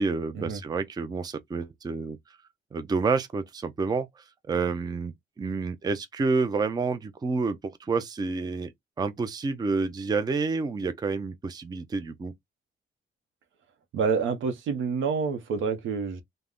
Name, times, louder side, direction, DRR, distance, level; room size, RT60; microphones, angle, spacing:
voice 1, 0.0-2.2 2.7-8.7 9.0-12.3, right 4 dB, 20° right, 0.4 m, -29 dB
voice 2, 13.9-16.2, right 5 dB, 75° right, 0.7 m, -28 dB
2.3 x 2.1 x 3.4 m
cardioid pair, 90°, 20 cm